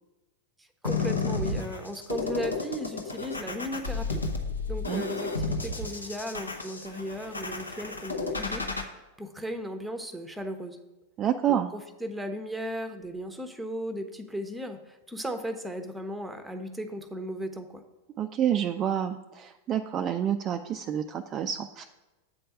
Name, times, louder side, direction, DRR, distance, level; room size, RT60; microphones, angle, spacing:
sound 1, 0.8-8.8, left 4 dB, 80° left, 0.8 m, -32 dB
voice 1, 0.8-4.2 4.7-8.7 8.9-10.8 11.5-17.8, equal, 5° right, 7 dB, 0.8 m, -36 dB
voice 2, 11.2-11.7 18.2-21.8, right 9 dB, 30° right, 6 dB, 0.4 m, -28 dB
8.4 x 4.4 x 6.5 m, 1.1 s
figure-of-eight pair, 90°, 0 cm